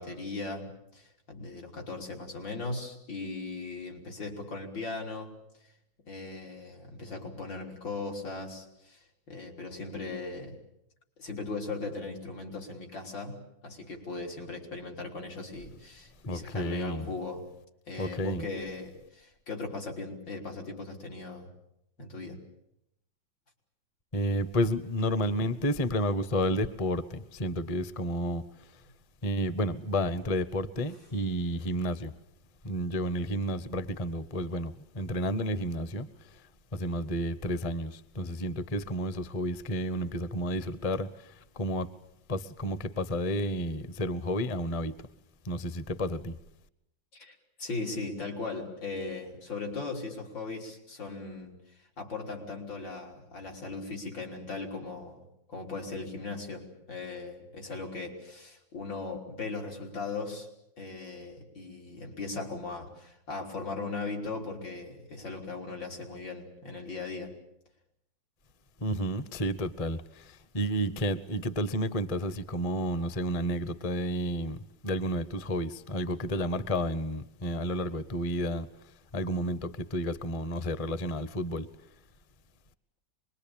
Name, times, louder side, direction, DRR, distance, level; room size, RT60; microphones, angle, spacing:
voice 1, 0.0-5.3 6.1-9.0 9.3-10.6 11.2-17.4 17.9-21.5 22.0-22.4 47.1-51.5 52.0-55.2 55.5-60.5 60.8-67.4, left 3 dB, 85° left, 4.5 m, -38 dB
voice 2, 16.2-17.1 18.0-18.4 24.1-28.8 29.2-32.1 32.6-36.4 36.7-41.9 42.3-45.0 45.4-46.4 68.8-78.7 79.1-81.7, equal, 25° left, 0.7 m, -31 dB
25.5 x 21.5 x 8.8 m
omnidirectional pair, 2.0 m